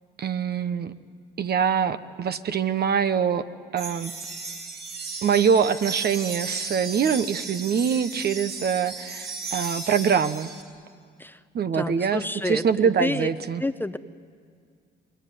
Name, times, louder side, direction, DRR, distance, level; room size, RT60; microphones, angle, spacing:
voice 1, 0.2-0.9 1.4-3.5 3.7-4.1 5.2-10.5 11.5-13.6, right 7 dB, 50° right, 11 dB, 1.1 m, -24 dB
sound 1, 3.8-10.6, right 4 dB, 90° right, 4.6 m, -35 dB
voice 2, 11.7-13.3 13.6-14.0, left 2 dB, 10° left, 12 dB, 0.8 m, -29 dB
29.0 x 21.0 x 9.5 m, 2.1 s
supercardioid pair, 70°, 21 cm